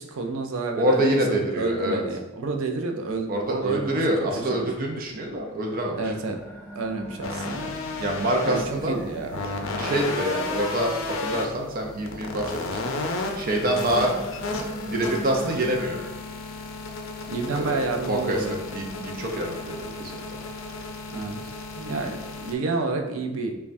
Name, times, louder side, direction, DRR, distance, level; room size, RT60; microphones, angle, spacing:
voice 1, 0.0-4.0 4.4-4.7 6.0-6.4 6.7-7.8 8.4-9.4 17.3-18.6 21.1-23.5, right 3 dB, 90° right, 4 dB, 0.5 m, -30 dB
voice 2, 0.7-2.0 3.3-6.0 8.0-9.0 9.8-12.8 13.4-14.4 14.8-16.0 17.5-17.8 18.1-18.4 18.7-20.1, right 1 dB, 45° right, 1 dB, 0.5 m, -26 dB
sound 1, 3.1-21.3, right 1 dB, 15° left, 0.6 m, -45 dB
sound 2, 7.2-22.5, left 3 dB, 70° left, 0.5 m, -33 dB
5.2 x 2.3 x 2.6 m, 1.1 s
head